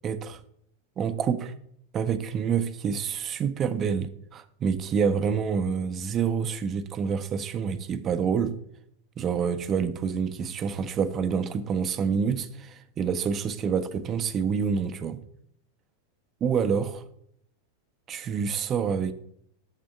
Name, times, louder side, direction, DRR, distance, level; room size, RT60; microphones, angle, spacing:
voice 1, 0.0-0.4 1.0-1.5 1.9-8.6 9.2-15.2 16.4-17.0 18.1-19.1, right 6 dB, 30° right, 0.5 m, -27 dB
7.3 x 3.4 x 6.4 m
figure-of-eight pair, 90°, 0 cm